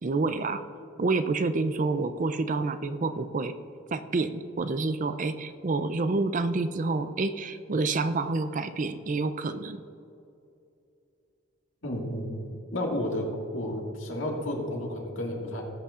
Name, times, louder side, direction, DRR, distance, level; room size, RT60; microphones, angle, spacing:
voice 1, 0.0-0.6 1.0-3.5 3.9-9.8, right 3 dB, 40° right, 10 dB, 0.4 m, -28 dB
voice 2, 11.8-13.3 13.5-15.6, left 1 dB, 75° left, -1 dB, 2.0 m, -32 dB
18.5 x 8.3 x 2.5 m, 2.7 s
head